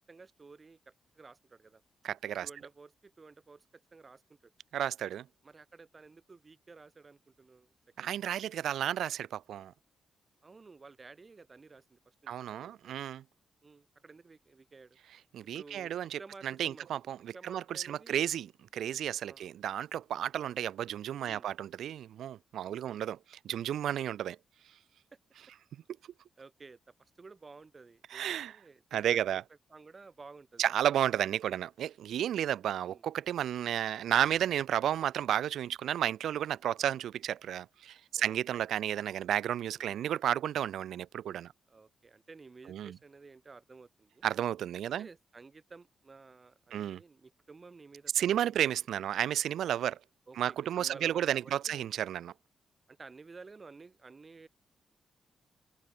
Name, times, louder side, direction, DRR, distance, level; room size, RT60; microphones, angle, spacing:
voice 1, 0.1-1.8 2.4-4.5 5.4-7.7 8.0-8.3 10.4-13.0 13.6-15.0 15.5-18.2 19.3-19.5 21.3-21.5 22.6-23.0 25.1-25.2 26.4-29.4 29.7-30.6 31.5-31.6 32.8-33.0 38.1-38.7 39.7-40.2 41.7-44.2 44.9-48.9 50.3-51.9 52.9-54.5, right 4 dB, 25° right, 3.4 m, -54 dB
voice 2, 2.0-2.5 4.7-5.2 8.0-9.7 12.3-13.2 15.3-18.5 18.7-24.4 28.1-28.5 28.9-29.4 30.6-41.5 42.7-42.9 44.2-45.1 46.7-47.0 48.1-50.0 50.4-52.3, right 10 dB, 90° right, 0.5 m, -32 dB
wide cardioid pair, 160°, 0 cm